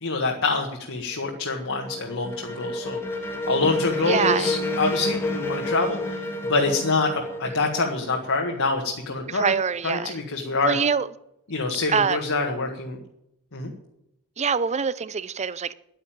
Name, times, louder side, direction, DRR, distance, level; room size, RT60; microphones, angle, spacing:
voice 1, 0.0-9.5 9.8-10.8 11.5-13.0 13.5-13.7, left 3 dB, 60° left, 1.7 m, -26 dB
sound 1, 1.1-8.9, left 1 dB, 10° left, 1.6 m, -30 dB
voice 2, 4.1-4.6 9.3-10.1 10.6-11.1 11.9-12.2 14.4-15.7, right 6 dB, 30° right, 0.5 m, -24 dB
11.0 x 9.2 x 9.1 m
head